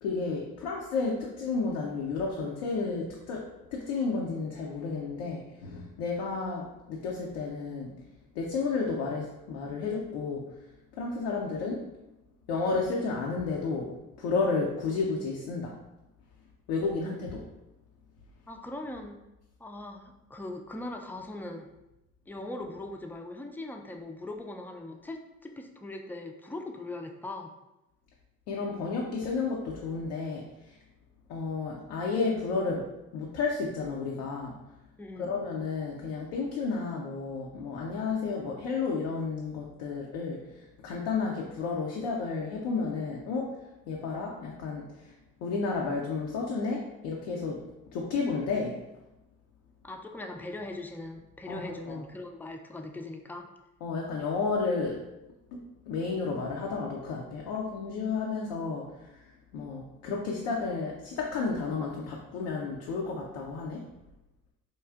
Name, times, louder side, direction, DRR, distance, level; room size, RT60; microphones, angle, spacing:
voice 1, 0.0-3.4 3.7-7.9 8.3-10.4 10.9-11.8 12.5-13.9 14.2-15.7 16.7-17.4 28.5-30.8 31.3-32.8 33.1-34.5 35.2-43.5 43.9-45.1 45.4-47.6 47.9-48.8 51.5-52.0 53.8-55.0 55.5-63.9, left 4 dB, 80° left, -2 dB, 0.6 m, -32 dB
voice 2, 18.5-19.2 19.6-21.7 22.3-27.5 35.0-35.3 49.8-53.5, left 2 dB, 5° left, 3 dB, 0.3 m, -40 dB
4.5 x 2.4 x 2.3 m, 0.96 s
hypercardioid pair, 45°, 41 cm